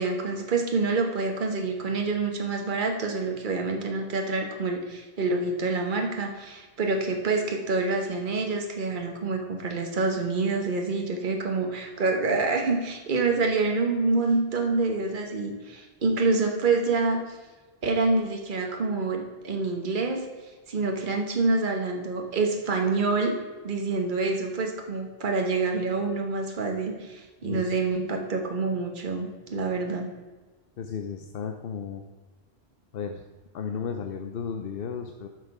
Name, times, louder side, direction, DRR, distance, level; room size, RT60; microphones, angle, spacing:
voice 1, 0.0-17.4 17.8-20.3 20.7-23.4 23.6-30.1, right 3 dB, 50° right, 3 dB, 1.3 m, -27 dB
voice 2, 27.4-27.8 30.8-32.0 32.9-33.2 33.5-35.3, left 6 dB, 65° left, 5 dB, 0.8 m, -34 dB
10.5 x 6.1 x 4.8 m, 1.3 s
omnidirectional pair, 1.1 m